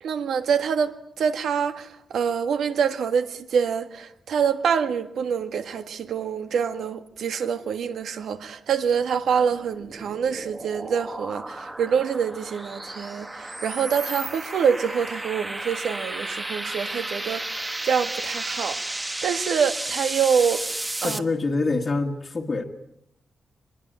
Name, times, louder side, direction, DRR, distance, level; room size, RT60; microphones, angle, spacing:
voice 1, 0.0-18.8 19.2-20.7 21.0-21.2, right 7 dB, 85° right, 1.8 m, -26 dB
sound 1, 9.2-21.2, right 1 dB, 15° right, 1.2 m, -33 dB
voice 2, 21.0-22.6, left 3 dB, 30° left, 1.6 m, -25 dB
24.0 x 21.5 x 9.0 m
wide cardioid pair, 160°, 0 cm